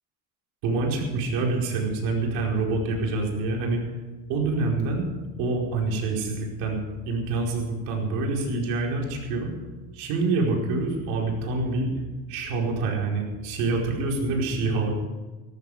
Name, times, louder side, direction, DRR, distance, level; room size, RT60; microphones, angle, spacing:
voice 1, 0.6-3.8 4.3-5.1 5.4-9.5 9.9-11.9 12.3-14.9, right 3 dB, 70° right, -1 dB, 4.8 m, -26 dB
18.0 x 14.0 x 5.0 m, 1.3 s
cardioid pair, 175°, 37 cm